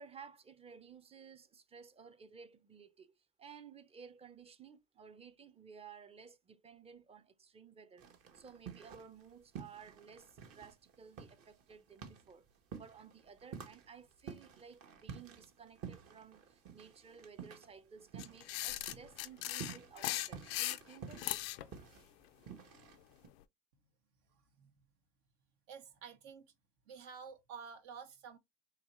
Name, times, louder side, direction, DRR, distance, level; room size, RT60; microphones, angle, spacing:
voice 1, 0.0-8.1 8.3-12.5 12.7-21.5, right 6 dB, 20° right, 0.6 m, -56 dB
sound 1, 8.0-9.3 9.5-18.6 18.8-23.3, right 7 dB, 50° right, 1.1 m, -50 dB
sound 2, 18.2-21.7, left 15 dB, 90° left, 0.5 m, -38 dB
voice 2, 24.3-24.9 25.7-26.5 26.9-28.4, right 6 dB, 75° right, 1.2 m, -51 dB
4.0 x 2.9 x 3.0 m
supercardioid pair, 100°, 30 cm